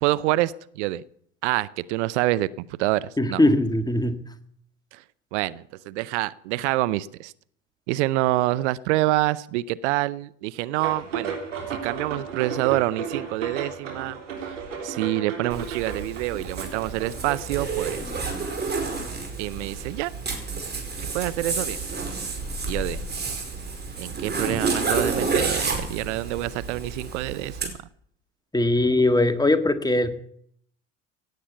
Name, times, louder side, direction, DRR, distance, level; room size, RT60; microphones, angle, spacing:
voice 1, 0.0-1.0 1.4-3.4 4.9-5.0 5.3-7.3 7.9-11.4 11.7-14.6 14.8-18.0 19.4-20.1 21.1-21.8 22.7-23.0 24.0-27.7, right 17 dB, 70° right, 18 dB, 0.7 m, -26 dB
voice 2, 3.2-4.2 28.5-30.1, left 1 dB, 10° left, 8 dB, 1.7 m, -20 dB
sound 1, 10.8-18.9, right 6 dB, 85° right, 3.5 m, -34 dB
Zipper (clothing), 15.5-27.7, right 4 dB, 30° right, 5.0 m, -30 dB
17.0 x 8.6 x 8.4 m, 0.65 s
hypercardioid pair, 65°, 36 cm